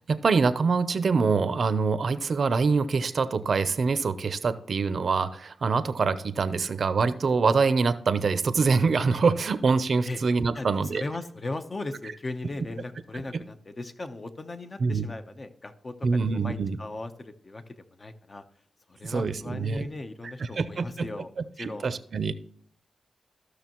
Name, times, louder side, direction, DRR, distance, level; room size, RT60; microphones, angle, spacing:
voice 1, 0.0-11.0 13.3-13.4 14.8-15.1 16.0-16.8 19.0-19.9 20.2-21.1 21.6-22.3, right 4 dB, 60° right, 14 dB, 0.6 m, -25 dB
voice 2, 10.5-18.4 18.9-21.9, left 2 dB, 35° left, 8 dB, 0.9 m, -38 dB
14.5 x 6.3 x 3.0 m, 0.67 s
cardioid pair, 75°, 0 cm